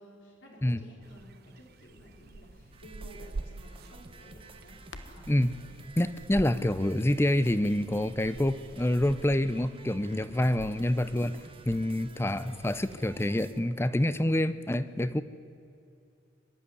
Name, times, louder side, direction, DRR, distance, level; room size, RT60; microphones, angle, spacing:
voice 1, 0.0-4.8 5.1-5.9 10.9-11.2 12.1-12.5, equal, 90° left, -1 dB, 4.1 m, -53 dB
sound 1, 1.0-11.8, right 3 dB, 55° right, 0.6 m, -47 dB
Crackle, 1.6-10.9, left 2 dB, 70° left, 1.3 m, -55 dB
sound 2, 2.7-13.6, right 3 dB, 30° right, 1.0 m, -53 dB
voice 2, 6.0-11.4 11.7-15.2, left 1 dB, 15° left, 14 dB, 0.6 m, -27 dB
24.0 x 11.5 x 9.8 m, 2.6 s
head